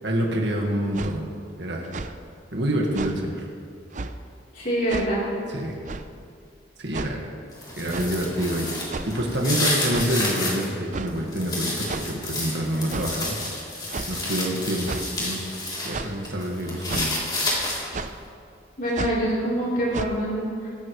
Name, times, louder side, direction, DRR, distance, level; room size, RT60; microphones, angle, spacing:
voice 1, 0.0-1.3 1.6-1.9 2.5-3.5 5.5-5.8 6.8-7.3 7.8-13.4 14.1-15.5 15.8-17.3, right 1 dB, 70° right, -1 dB, 1.7 m, -27 dB
sound 1, 0.9-1.1 1.8-2.1 2.9-3.2 3.9-4.1 4.9-5.1 5.9-6.1 6.9-7.1 7.9-8.1 8.9-9.2 9.9-10.1 10.9-11.1 11.9-12.1 12.9-13.1 13.9-14.1 14.9-15.1 15.9-16.2 16.9-17.1 17.9-18.1 18.9-19.2 19.9-20.1, right 3 dB, 45° right, 0.6 m, -32 dB
voice 2, 4.5-5.2 18.8-20.7, right 1 dB, 50° left, -7 dB, 3.8 m, -25 dB
sound 2, 7.5-10.7 11.1-15.9 16.2-18.0, left 2 dB, 25° left, 3.4 m, -30 dB
23.0 x 12.0 x 3.2 m, 2.4 s
head